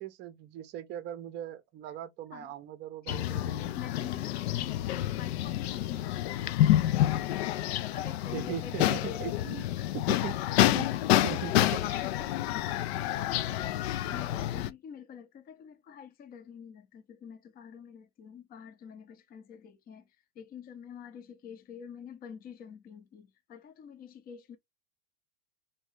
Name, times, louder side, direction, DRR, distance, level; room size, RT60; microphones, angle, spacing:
voice 1, 0.0-3.7 8.3-9.7 9.9-10.9 11.2-12.1, right 11 dB, 30° right, 0.6 m, -40 dB
voice 2, 3.0-6.8 7.6-9.9 12.9-13.1 13.4-24.6, left 8 dB, 25° left, 0.6 m, -47 dB
sound 1, 3.1-14.7, left 13 dB, 65° left, 0.5 m, -28 dB
3.0 x 2.8 x 3.1 m
hypercardioid pair, 115°, 35 cm